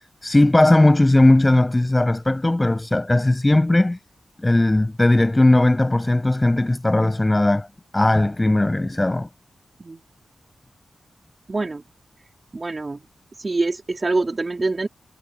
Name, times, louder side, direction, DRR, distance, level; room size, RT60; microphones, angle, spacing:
voice 1, 0.2-4.0 4.4-7.7 7.9-9.3, left 2 dB, 20° left, 7.9 m, -17 dB
voice 2, 11.5-11.8 12.5-13.0 13.4-14.9, right 3 dB, 35° right, 4.2 m, -25 dB
wide cardioid pair, 90°, 0 cm